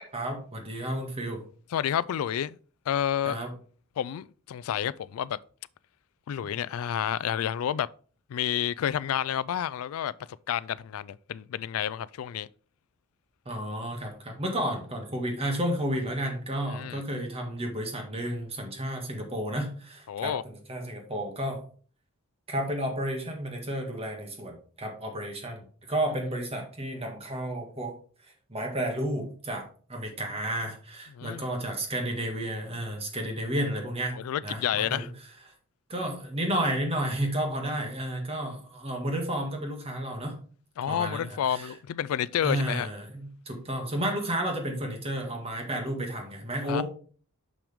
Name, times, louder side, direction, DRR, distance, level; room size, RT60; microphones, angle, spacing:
voice 1, 0.1-1.4 3.2-3.5 13.4-21.6 22.5-28.0 28.5-29.6 29.9-34.2 34.4-35.1 35.9-40.4 40.9-41.7 42.4-46.8, right 1 dB, 30° right, 1.7 m, -32 dB
voice 2, 1.7-2.6 2.9-3.4 4.0-5.4 6.3-7.9 8.3-10.1 10.5-12.5 16.7-17.0 20.1-20.4 31.2-31.5 34.2-35.1 40.8-42.9 46.7-46.8, left 9 dB, 90° left, 0.3 m, -30 dB
6.5 x 5.9 x 3.5 m
head